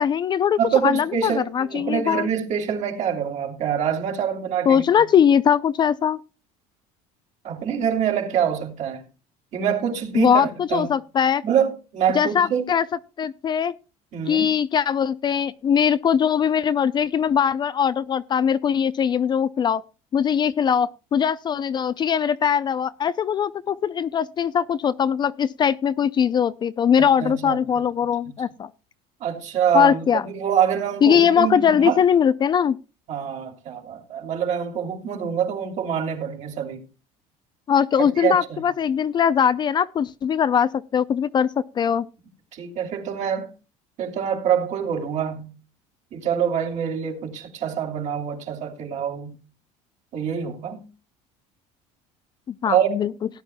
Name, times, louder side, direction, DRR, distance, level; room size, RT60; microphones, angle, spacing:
voice 1, 0.0-2.3 4.7-6.2 10.1-11.4 12.1-12.8 13.2-13.7 14.3-19.8 20.1-28.7 29.7-30.2 31.0-32.8 37.7-41.5 41.8-42.1 52.5-53.1, left 8 dB, 30° left, 0.4 m, -21 dB
voice 2, 0.6-4.8 7.4-9.0 9.5-10.9 11.4-12.7 14.1-14.5 27.0-27.8 28.2-28.3 29.2-32.0 33.1-36.8 38.0-38.6 42.5-43.5 44.0-45.5 46.1-49.4 50.1-50.8 52.6-53.1, right 8 dB, 55° right, 2.8 m, -25 dB
18.0 x 10.5 x 2.2 m
cardioid pair, 140°, 15 cm